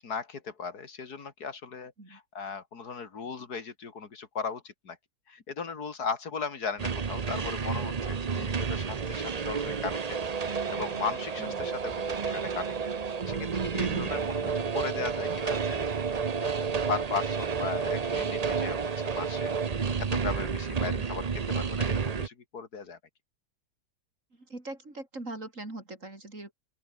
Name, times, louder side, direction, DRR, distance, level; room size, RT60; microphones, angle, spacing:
voice 1, 0.0-5.0 5.3-12.7 13.3-23.0, left 5 dB, 75° left, 2.8 m, -37 dB
sound 1, 6.8-22.3, right 5 dB, 35° right, 0.7 m, -30 dB
voice 2, 11.4-11.7 13.8-14.6 24.4-26.5, right 2 dB, 50° right, 5.3 m, -42 dB
open air
omnidirectional pair, 1.7 m